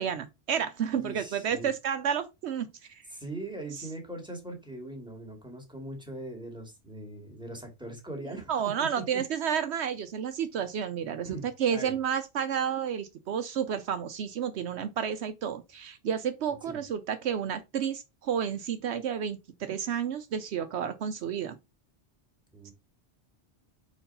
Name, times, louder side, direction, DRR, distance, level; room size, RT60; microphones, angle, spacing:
voice 1, 0.0-3.0 8.5-21.6 22.6-22.7, right 8 dB, 75° right, 0.9 m, -31 dB
voice 2, 1.0-1.7 3.1-8.5 9.0-9.2 11.2-11.9 16.7-16.8 22.5-22.7, right 1 dB, 5° right, 2.0 m, -41 dB
4.6 x 4.5 x 5.3 m
omnidirectional pair, 1.2 m